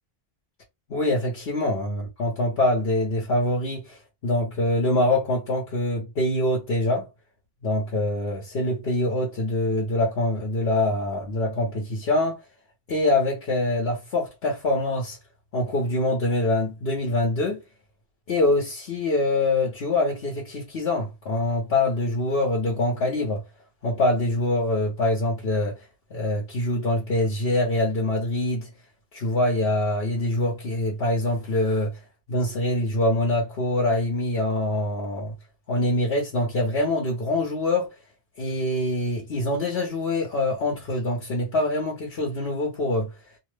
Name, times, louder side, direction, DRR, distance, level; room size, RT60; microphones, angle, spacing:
voice 1, 0.9-4.0 4.2-7.1 7.6-12.4 12.9-15.2 15.5-17.6 18.3-23.4 23.8-25.7 26.1-28.7 29.1-31.9 32.3-35.3 35.7-37.9 38.4-43.1, left 1 dB, 75° left, 1.1 m, -24 dB
2.8 x 2.0 x 3.2 m
omnidirectional pair, 1.0 m